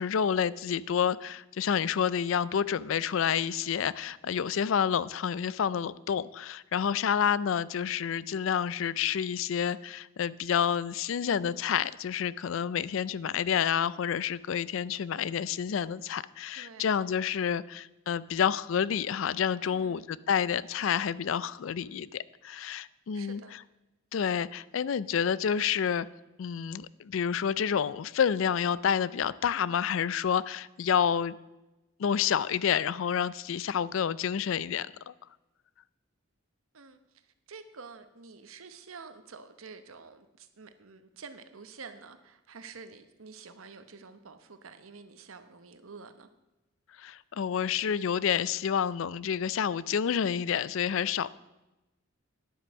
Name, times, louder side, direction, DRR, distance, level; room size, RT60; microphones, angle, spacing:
voice 1, 0.0-23.4 24.1-26.1 26.4-31.4 32.0-35.1 47.0-51.3, left 8 dB, 70° left, 19 dB, 0.4 m, -29 dB
voice 2, 16.5-16.9 19.6-20.1 23.1-23.5 36.7-46.3, right 5 dB, 90° right, 10 dB, 0.9 m, -49 dB
10.0 x 7.9 x 6.2 m, 1.0 s
head